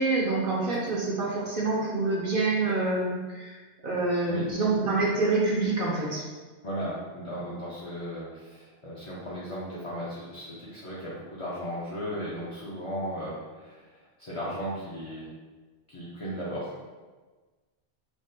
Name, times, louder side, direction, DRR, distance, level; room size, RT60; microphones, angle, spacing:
voice 1, 0.0-3.6 3.8-6.2, right 3 dB, 60° right, -3 dB, 0.7 m, -26 dB
voice 2, 6.6-13.8 14.2-15.3 15.9-16.7, equal, 40° left, -8 dB, 0.5 m, -36 dB
3.5 x 2.4 x 2.6 m, 1.3 s
omnidirectional pair, 1.2 m